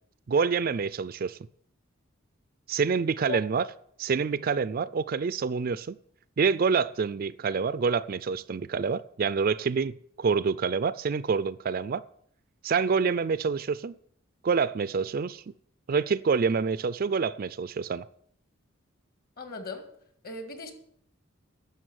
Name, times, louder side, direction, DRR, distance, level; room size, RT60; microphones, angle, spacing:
voice 1, 0.3-1.4 2.7-3.6 4.0-6.0 6.4-12.0 12.6-13.9 14.4-15.4 15.9-18.1, right 5 dB, 45° right, 0.4 m, -27 dB
voice 2, 19.4-19.9 20.2-20.7, left 3 dB, 45° left, 1.9 m, -37 dB
11.0 x 6.9 x 9.4 m
head